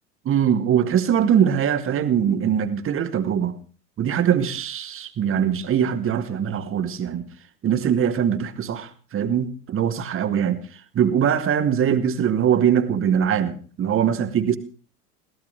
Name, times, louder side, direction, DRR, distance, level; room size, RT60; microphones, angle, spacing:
voice 1, 0.3-3.6 4.0-7.3 7.6-14.6, right 8 dB, 30° right, 1.9 m, -22 dB
22.0 x 17.0 x 3.4 m
figure-of-eight pair, 80°, 45 cm